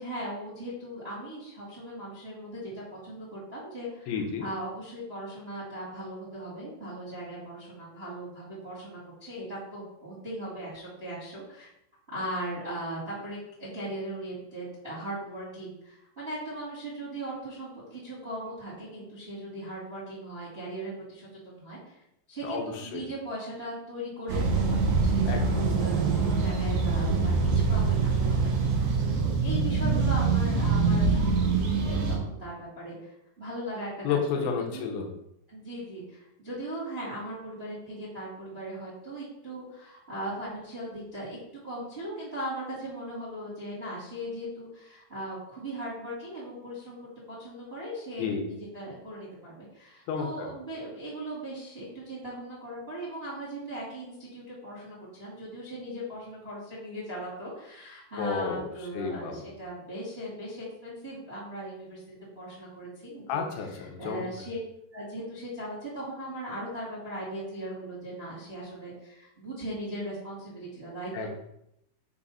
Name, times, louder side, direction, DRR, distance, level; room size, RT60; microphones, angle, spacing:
voice 1, 0.0-4.1 4.4-11.7 12.1-22.0 22.3-28.6 29.2-34.9 35.5-63.4 64.0-64.6 64.9-71.3, right 1 dB, 30° right, -8 dB, 1.0 m, -38 dB
voice 2, 4.1-4.5 22.4-23.0 25.3-25.6 34.0-35.1 48.2-48.5 50.1-50.5 58.2-58.6 58.9-59.5 63.3-64.2 71.1-71.3, left 6 dB, 85° left, 2 dB, 3.1 m, -31 dB
sound 1, 24.3-32.2, right 4 dB, 85° right, 1.7 m, -24 dB
6.9 x 2.5 x 5.5 m, 0.79 s
omnidirectional pair, 5.3 m